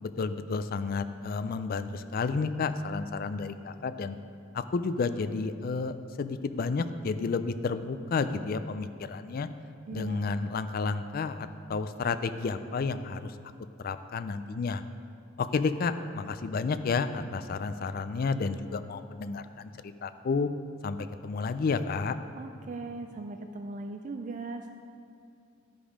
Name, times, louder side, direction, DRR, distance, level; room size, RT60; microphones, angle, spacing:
voice 1, 0.0-4.2 4.5-9.5 9.9-13.3 13.8-14.8 15.4-20.5 20.8-22.2, left 4 dB, 50° left, 11 dB, 0.4 m, -31 dB
voice 2, 9.9-10.3 22.3-24.7, right 3 dB, 40° right, 5 dB, 0.3 m, -39 dB
12.0 x 5.2 x 4.9 m, 2.5 s
head